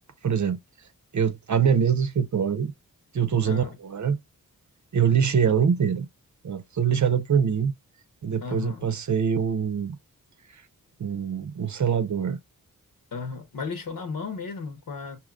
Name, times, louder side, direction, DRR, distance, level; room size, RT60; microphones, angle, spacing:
voice 1, 0.2-0.6 1.1-2.7 3.1-4.2 4.9-6.1 6.4-7.7 8.2-10.0 11.0-12.4, right 7 dB, 50° right, 0.7 m, -24 dB
voice 2, 3.4-3.8 5.4-5.5 8.4-8.9 13.1-15.2, left 5 dB, 70° left, 1.2 m, -34 dB
5.3 x 2.7 x 2.5 m
cardioid pair, 45°, 36 cm